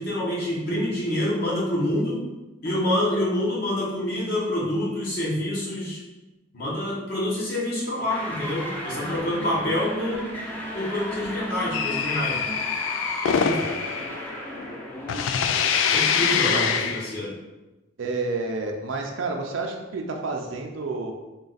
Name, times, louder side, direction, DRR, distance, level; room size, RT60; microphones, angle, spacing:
voice 1, 0.0-2.2 2.6-6.0 6.5-10.2 10.7-12.4 13.2-13.7 15.9-17.3, left 1 dB, 55° left, -5 dB, 1.3 m, -27 dB
sound 1, 8.1-15.3, equal, 10° left, 0.6 m, -34 dB
sound 2, 11.7-14.8 15.1-17.1, left 7 dB, 80° left, 0.3 m, -25 dB
voice 2, 16.2-16.9 18.0-21.1, right 3 dB, 85° right, 2 dB, 0.5 m, -30 dB
3.7 x 2.5 x 4.0 m, 1.1 s
head